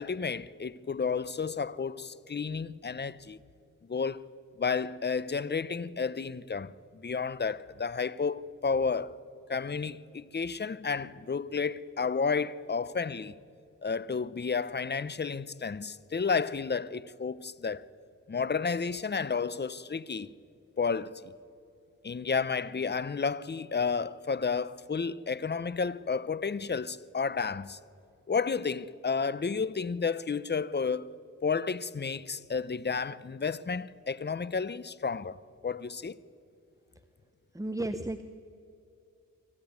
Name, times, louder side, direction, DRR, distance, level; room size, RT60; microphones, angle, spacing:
voice 1, 0.0-3.4 3.9-4.2 4.6-9.1 9.5-13.3 13.8-17.8 18.3-20.3 20.8-21.3 22.0-27.8 28.3-31.1 31.4-35.4 35.6-36.2, left 5 dB, 35° left, 0.8 m, -31 dB
voice 2, 37.5-38.2, right 1 dB, 10° right, 1.0 m, -33 dB
25.0 x 15.0 x 9.6 m
cardioid pair, 50°, 32 cm